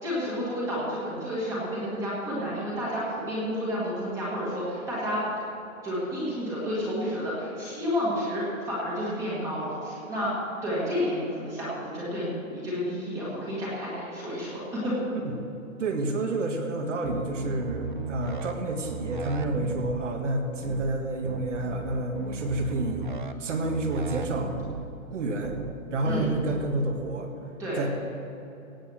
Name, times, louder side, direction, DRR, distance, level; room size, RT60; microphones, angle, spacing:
voice 1, 0.0-5.2 5.8-10.3 10.6-15.0 26.0-26.3 27.6-27.8, equal, 5° right, -7 dB, 1.6 m, -30 dB
voice 2, 15.8-23.1 23.4-24.6 25.1-25.6 25.9-27.3 27.8-27.9, right 2 dB, 60° right, 4 dB, 1.9 m, -29 dB
sound 1, 17.0-18.5 18.8-20.0 20.6-20.9 21.2-23.3 23.6-24.8 25.4-25.7 26.0-26.6, right 4 dB, 40° right, 0.4 m, -35 dB
17.5 x 7.0 x 6.4 m, 2.9 s
hypercardioid pair, 180°, 42 cm